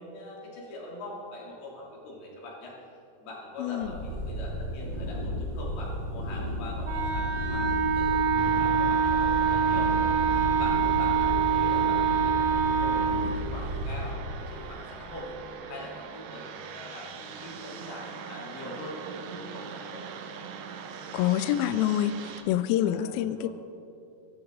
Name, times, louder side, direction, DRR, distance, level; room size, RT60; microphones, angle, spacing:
voice 1, 0.0-2.8 3.2-9.9 10.3-15.4 15.7-20.0 22.8-23.5, left 1 dB, 70° left, -4 dB, 4.8 m, -43 dB
voice 2, 3.6-3.9 21.1-23.5, left 11 dB, 85° left, 14 dB, 2.1 m, -27 dB
Cat Purring, 3.8-14.1, equal, 25° right, 4.1 m, -33 dB
Wind instrument woodwind instrument, 6.8-13.2, right 7 dB, 65° right, 1.1 m, -25 dB
sound 1, 8.4-22.4, right 5 dB, 85° right, 3.1 m, -42 dB
23.5 x 12.5 x 3.9 m, 2.7 s
omnidirectional pair, 4.8 m